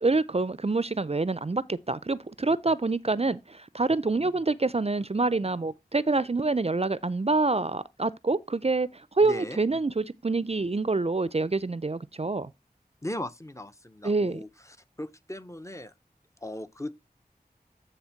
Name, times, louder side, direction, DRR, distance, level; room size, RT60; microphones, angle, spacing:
voice 1, 0.0-12.5 14.0-14.4, right 3 dB, 40° right, 0.5 m, -26 dB
voice 2, 9.2-9.6 13.0-15.9 16.4-16.9, left 1 dB, 20° left, 0.7 m, -38 dB
9.7 x 3.4 x 5.7 m
wide cardioid pair, 40°, 16 cm